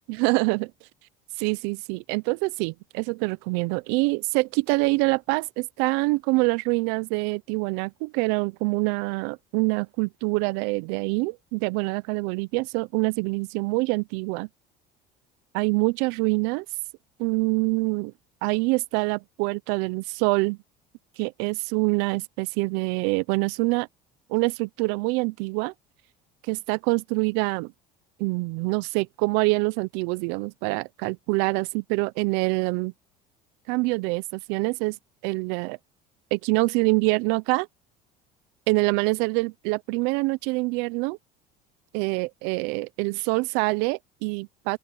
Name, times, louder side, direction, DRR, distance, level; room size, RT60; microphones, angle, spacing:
voice 1, 0.1-0.7 1.4-14.5 15.5-16.7 17.2-18.1 18.4-20.6 21.2-23.9 24.3-25.7 26.5-27.7 28.2-32.9 33.7-35.0 35.2-35.8 36.3-37.7 38.7-41.2 41.9-44.8, right 26 dB, 80° right, 0.5 m, -25 dB
open air
cardioid pair, 135°, 17 cm